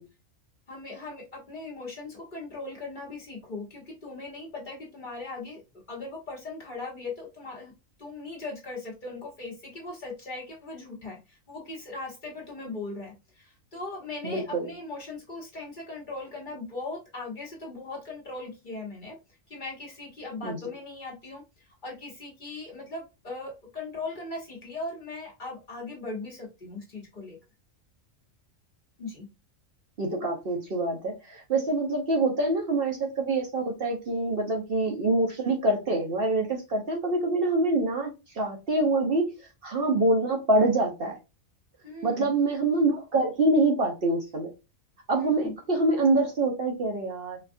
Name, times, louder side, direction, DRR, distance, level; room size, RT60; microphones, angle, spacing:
voice 1, 0.7-7.7 8.0-19.2 19.5-27.4 29.0-29.3 41.8-42.3 45.2-45.5, left 3 dB, 40° left, -2 dB, 1.3 m, -39 dB
voice 2, 14.2-14.7 20.4-20.6 30.0-39.3 39.6-41.2 42.0-44.5 45.1-47.5, right 2 dB, 55° right, 1 dB, 0.9 m, -25 dB
4.1 x 2.4 x 2.5 m, 0.26 s
omnidirectional pair, 1.3 m